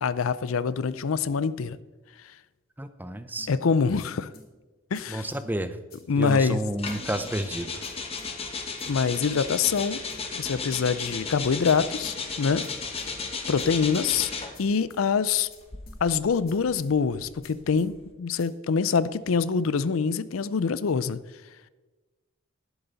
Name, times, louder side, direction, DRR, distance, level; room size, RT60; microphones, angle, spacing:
voice 1, 0.0-1.8 3.5-4.3 4.9-5.3 6.1-6.6 8.9-10.0 10.3-12.7 13.5-14.3 14.6-15.5 16.0-21.2, left 5 dB, 90° left, 16 dB, 0.5 m, -25 dB
voice 2, 2.8-3.5 5.1-5.8 6.2-7.8, right 1 dB, 10° right, 11 dB, 0.6 m, -31 dB
sound 1, 3.4-3.5 4.0-4.1 4.3-4.5 4.9-5.0 5.3-5.4 5.9-6.0 6.3-6.4 6.9-7.0 7.2-7.4 7.8-7.9 8.2-8.3 8.8-8.9 9.1-9.3 9.7-9.8 10.1-10.2 10.7-10.8 11.1-11.2 11.7-11.8 12.0-12.2 12.6-12.7 13.0-13.1 13.6-13.7 13.9-14.1 14.5-14.6 14.9-15.0 15.5-15.6 15.9-16.0 16.5-16.6 16.8-17.0 17.4-17.5 17.8-17.9 18.4-18.5, left 3 dB, 50° left, 3.2 m, -51 dB
sound 2, 6.8-14.7 15.5-18.0, left 4 dB, 30° left, 1.2 m, -35 dB
11.5 x 11.0 x 4.0 m, 1.2 s
head